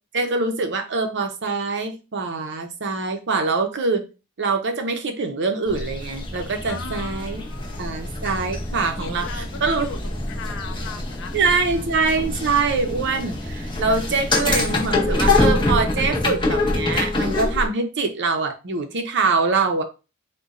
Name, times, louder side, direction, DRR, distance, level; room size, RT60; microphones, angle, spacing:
voice 1, 0.1-4.0 4.4-7.4 7.8-9.9 11.3-19.8, right 4 dB, 55° right, 0.7 m, -24 dB
sound 1, 5.7-17.7, left 2 dB, 20° left, 0.9 m, -25 dB
voice 2, 6.6-7.9 8.7-11.4 11.7-11.8, left 5 dB, 60° left, 0.7 m, -38 dB
3.7 x 2.3 x 4.0 m
head